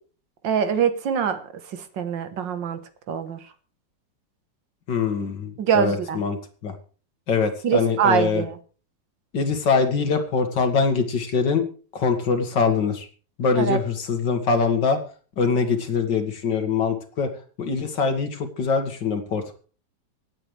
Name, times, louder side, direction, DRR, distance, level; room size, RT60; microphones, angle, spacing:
voice 1, 0.4-1.4 2.0-2.8 3.1-3.4 5.6-6.2 7.6-8.5 13.6-13.8, right 7 dB, 80° right, 9 dB, 2.0 m, -23 dB
voice 2, 4.9-6.4 6.6-6.7 7.3-8.4 9.3-11.6 11.9-13.1 13.4-15.0 15.4-17.3 17.6-19.5, left 5 dB, 75° left, 6 dB, 2.5 m, -23 dB
25.0 x 8.9 x 3.3 m, 0.38 s
omnidirectional pair, 1.9 m